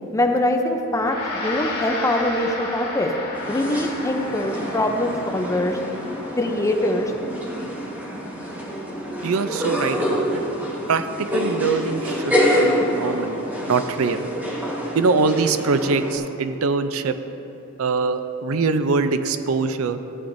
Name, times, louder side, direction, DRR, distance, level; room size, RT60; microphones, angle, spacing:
voice 1, 0.1-3.1 3.5-5.8 6.4-7.1, left 1 dB, 15° left, 4 dB, 0.6 m, -23 dB
Gong, 0.9-10.5, left 2 dB, 45° left, 2.3 m, -34 dB
sound 1, 3.3-16.2, equal, 10° right, 1.3 m, -27 dB
voice 2, 9.2-10.4 10.9-13.4 13.7-14.2 14.9-17.2 17.8-20.0, right 4 dB, 70° right, 10 dB, 0.5 m, -23 dB
14.5 x 8.5 x 2.6 m, 2.8 s
head